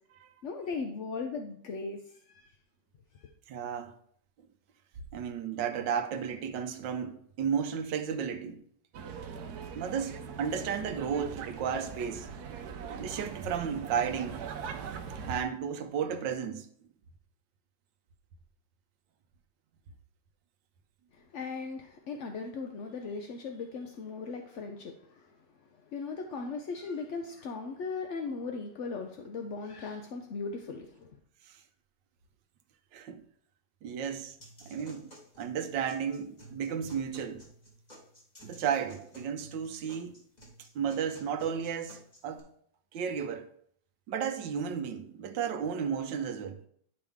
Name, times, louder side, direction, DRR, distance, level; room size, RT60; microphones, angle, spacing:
voice 1, 0.4-2.5 3.1-3.3 21.1-25.4 25.7-31.1, left 4 dB, 65° left, 0.7 m, -38 dB
voice 2, 3.5-3.9 5.1-8.6 9.7-12.3 13.0-14.5 15.1-16.7 31.4-31.6 32.9-33.2 33.8-34.4 34.7-35.1 35.4-37.4 38.4-40.2 40.7-42.5 42.9-43.5 44.1-46.6, right 7 dB, 85° right, 1.4 m, -33 dB
sound 1, 8.9-15.4, right 6 dB, 70° right, 1.1 m, -41 dB
sound 2, 34.4-42.4, equal, 25° left, 1.9 m, -54 dB
11.0 x 4.9 x 3.6 m
omnidirectional pair, 2.0 m